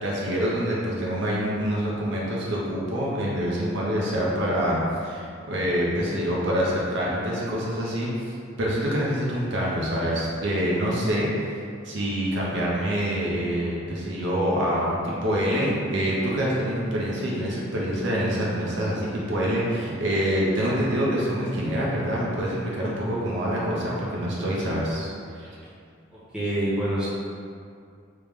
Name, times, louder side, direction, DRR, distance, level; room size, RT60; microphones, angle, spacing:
voice 1, 0.0-8.1 8.6-11.6 11.8-25.1 25.3-25.5, equal, 65° right, -5 dB, 0.7 m, -26 dB
voice 2, 26.1-27.1, right 1 dB, 5° right, -11 dB, 1.0 m, -26 dB
3.2 x 3.0 x 3.5 m, 2.3 s
head